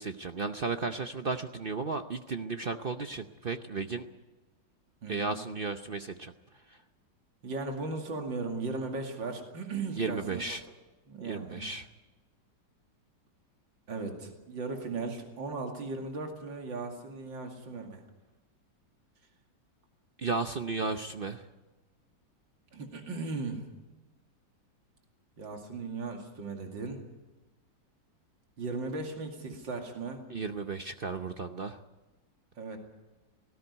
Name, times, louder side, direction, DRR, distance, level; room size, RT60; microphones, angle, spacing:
voice 1, 0.0-4.1 5.1-6.3 6.7-6.8 10.0-10.6 11.2-11.9 20.2-21.5 30.3-31.8, right 4 dB, 55° right, 8 dB, 0.6 m, -34 dB
voice 2, 5.0-5.3 7.4-10.4 11.1-11.7 13.9-18.0 22.7-23.6 25.4-27.0 28.6-30.2 32.6-32.8, right 3 dB, 80° right, 3 dB, 3.1 m, -37 dB
18.0 x 16.5 x 9.8 m, 1.1 s
omnidirectional pair, 2.0 m